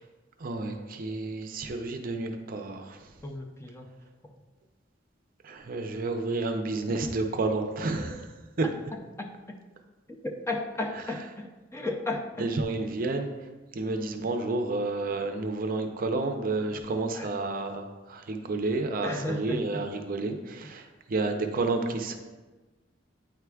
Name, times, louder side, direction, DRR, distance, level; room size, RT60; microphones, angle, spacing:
voice 1, 0.4-3.1 5.4-8.3 8.6-8.7 12.4-13.3 13.7-22.2, right 3 dB, 50° right, 5 dB, 0.5 m, -30 dB
voice 2, 3.2-3.9 9.2-9.3 10.2-12.5 14.2-14.3 17.2-17.3 19.0-19.8, left 2 dB, 15° left, 2 dB, 0.4 m, -34 dB
9.0 x 4.7 x 2.3 m, 1.2 s
head